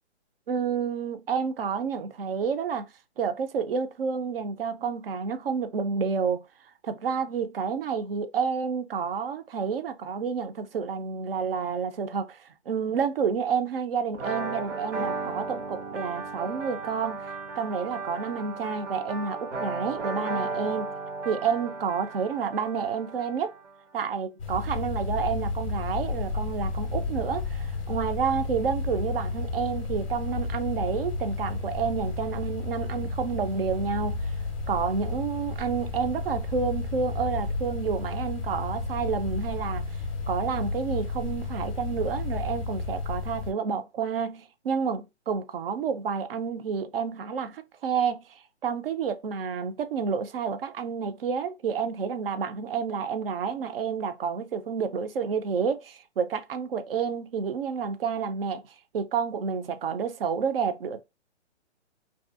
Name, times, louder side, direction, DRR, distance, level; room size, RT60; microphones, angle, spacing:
voice 1, 0.5-2.9 3.2-6.4 6.8-20.9 21.2-23.5 23.9-34.4 34.7-40.0 40.3-58.6 58.9-61.0, right 6 dB, 55° right, 0.4 m, -29 dB
sound 1, 14.1-23.7, right 3 dB, 85° right, 0.9 m, -35 dB
sound 2, 24.4-43.5, left 3 dB, 30° left, 0.6 m, -32 dB
2.6 x 2.3 x 2.3 m
hypercardioid pair, 160°, 35 cm